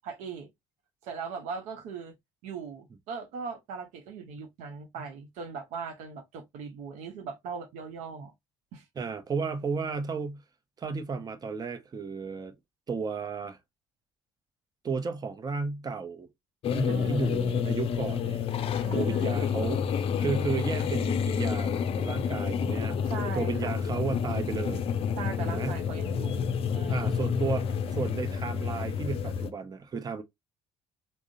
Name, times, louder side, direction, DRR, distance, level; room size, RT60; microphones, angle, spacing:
voice 1, 0.0-0.5 1.0-2.1 2.4-8.3 8.7-8.8 16.9-17.4 18.7-19.5 23.0-23.8 25.2-27.2, right 6 dB, 70° right, 0.6 m, -40 dB
voice 2, 9.0-10.4 10.8-12.5 12.9-13.6 14.8-16.3 16.7-18.5 18.9-23.1 23.3-24.9 25.4-25.7 26.9-30.2, right 5 dB, 30° right, 0.6 m, -33 dB
sound 1, 16.6-29.5, left 7 dB, 50° left, 0.4 m, -29 dB
3.6 x 2.0 x 2.6 m
hypercardioid pair, 60°, 12 cm